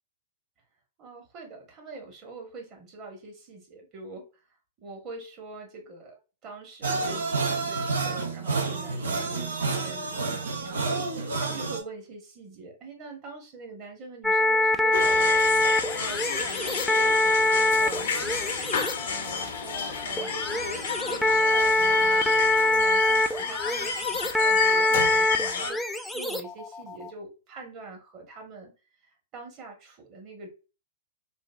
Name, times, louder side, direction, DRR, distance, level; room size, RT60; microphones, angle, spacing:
voice 1, 1.0-4.3 4.8-15.4 15.9-18.5 19.0-28.7 29.0-30.5, right 3 dB, 35° right, 2 dB, 1.2 m, -43 dB
sound 1, 6.8-11.8, right 3 dB, 70° right, 0.7 m, -29 dB
sound 2, 14.2-27.1, left 2 dB, 5° left, 0.3 m, -24 dB
sound 3, 14.9-25.7, left 6 dB, 60° left, 0.8 m, -31 dB
3.8 x 2.3 x 2.4 m, 0.32 s
figure-of-eight pair, 105°, 0 cm